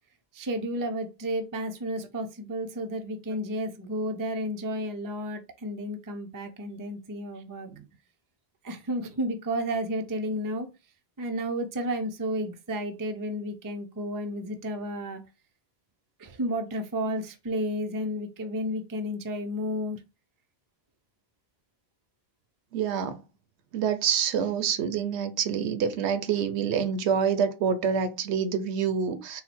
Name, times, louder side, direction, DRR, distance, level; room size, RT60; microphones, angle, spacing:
voice 1, 0.3-7.7 8.6-10.7 11.2-15.2 16.2-20.0, equal, 30° right, 0.4 m, -32 dB
voice 2, 22.7-23.2 23.7-29.4, right 7 dB, 90° right, 0.9 m, -27 dB
4.0 x 2.1 x 4.2 m
omnidirectional pair, 1.1 m